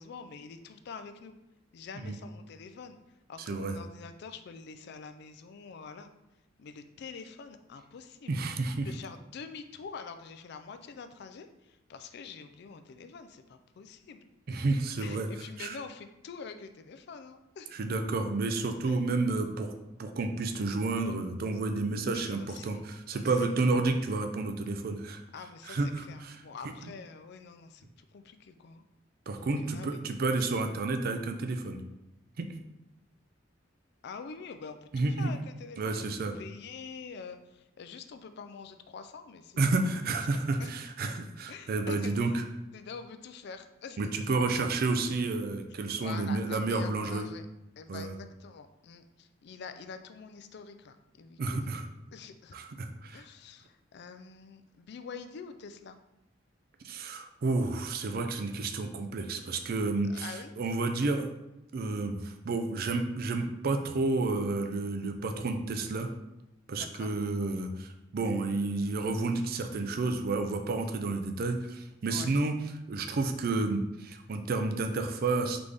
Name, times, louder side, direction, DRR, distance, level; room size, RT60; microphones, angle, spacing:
voice 1, 0.0-1.4 1.7-3.0 3.3-6.1 6.6-8.3 8.8-14.6 15.0-17.7 18.8-19.0 22.0-22.9 23.1-23.6 25.3-28.8 29.3-29.9 34.0-36.1 36.4-40.3 40.6-40.7 41.5-42.3 42.7-44.0 46.0-47.5 47.8-51.7 52.1-52.6 53.1-56.0 60.1-60.6 66.7-67.1 72.1-72.3, left 5 dB, 55° left, 9 dB, 0.4 m, -46 dB
voice 2, 3.5-3.8 8.3-8.9 14.5-15.3 15.6-15.8 17.7-19.7 20.0-25.2 25.6-26.4 29.3-31.8 32.4-32.5 34.9-35.3 35.8-36.3 39.6-42.4 44.0-47.3 47.9-48.1 51.4-51.8 52.5-53.2 56.8-61.3 61.7-66.1 66.7-72.5 72.9-75.6, right 3 dB, 50° right, 6 dB, 0.4 m, -30 dB
3.9 x 3.5 x 3.3 m, 0.90 s
head